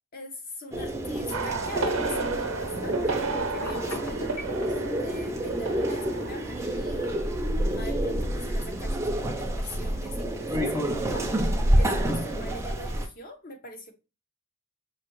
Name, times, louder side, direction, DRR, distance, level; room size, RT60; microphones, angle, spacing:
voice 1, 0.1-13.9, left 1 dB, 40° left, 4 dB, 1.0 m, -42 dB
sound 1, 0.7-13.1, right 1 dB, 15° right, 0.5 m, -28 dB
sound 2, 1.3-7.8 8.0-8.4, right 4 dB, 80° right, 0.7 m, -33 dB
Telephone, 3.5-4.6, left 3 dB, 90° left, 1.1 m, -37 dB
5.8 x 2.8 x 3.0 m, 0.30 s
head